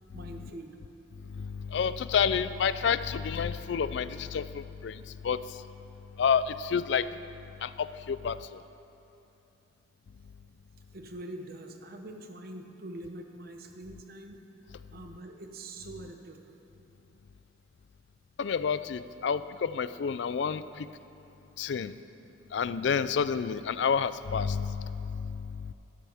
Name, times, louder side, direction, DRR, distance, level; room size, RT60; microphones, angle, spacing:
voice 1, 0.1-0.8 10.9-14.4 14.9-16.4 21.8-22.1, right 1 dB, 50° right, 4 dB, 0.9 m, -44 dB
voice 2, 1.3-5.4 6.2-7.1 7.6-8.4 18.4-20.9 21.6-21.9 22.5-25.7, left 6 dB, 60° left, 14 dB, 0.4 m, -29 dB
14.5 x 13.0 x 3.5 m, 2.8 s
head